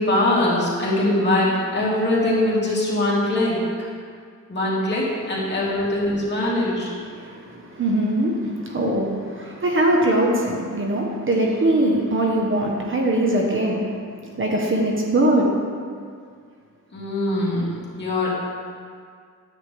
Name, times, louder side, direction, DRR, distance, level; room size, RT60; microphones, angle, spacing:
voice 1, 0.0-3.9 4.5-6.9 16.9-18.4, left 1 dB, 35° left, -6 dB, 2.5 m, -22 dB
voice 2, 7.1-13.8 14.3-15.5, right 1 dB, 40° right, -1 dB, 1.1 m, -21 dB
9.9 x 8.1 x 3.4 m, 2.1 s
cardioid pair, 110°, 33 cm